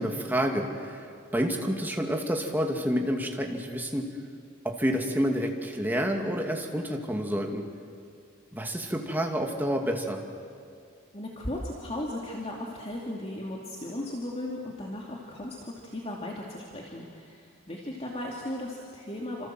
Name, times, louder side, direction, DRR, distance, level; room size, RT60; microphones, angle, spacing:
voice 1, 0.0-4.1 4.6-7.7 8.5-10.2, equal, 10° right, 2 dB, 2.5 m, -29 dB
voice 2, 11.1-19.5, left 1 dB, 30° left, -2 dB, 2.6 m, -36 dB
28.5 x 27.0 x 7.7 m, 2.3 s
head